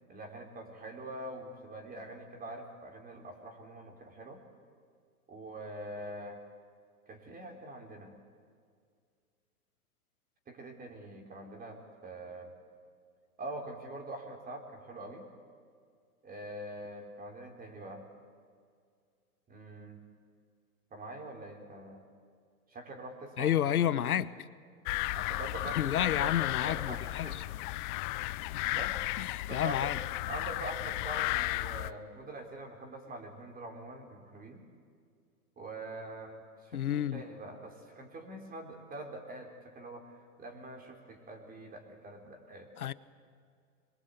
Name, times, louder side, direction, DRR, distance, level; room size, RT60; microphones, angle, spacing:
voice 1, 0.1-4.4 5.3-6.4 7.1-8.2 10.5-12.5 13.4-15.3 16.2-18.1 19.5-20.0 20.9-22.0 22.7-24.1 25.2-27.4 27.9-28.1 28.6-29.0 29.5-29.9 30.3-34.7 35.6-42.7, right 2 dB, 20° right, 4.0 m, -44 dB
voice 2, 23.4-24.3 25.7-27.4 28.5-28.6 29.2-30.0 36.7-37.2 42.8-42.9, left 10 dB, 75° left, 1.0 m, -30 dB
sound 1, 24.9-31.9, left 19 dB, 35° left, 0.6 m, -34 dB
26.5 x 23.0 x 8.5 m
hypercardioid pair, 115°, 44 cm